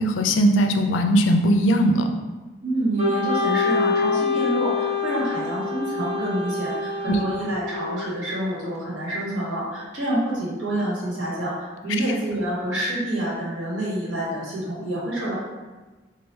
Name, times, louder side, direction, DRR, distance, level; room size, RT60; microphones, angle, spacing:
voice 1, 0.0-2.1 7.1-7.2, equal, 85° left, 5 dB, 0.4 m, -19 dB
voice 2, 2.6-15.4, right 1 dB, 80° right, -7 dB, 1.4 m, -27 dB
Wind instrument woodwind instrument, 3.0-8.1, left 5 dB, 35° right, 0.6 m, -26 dB
3.1 x 2.4 x 4.3 m, 1.2 s
head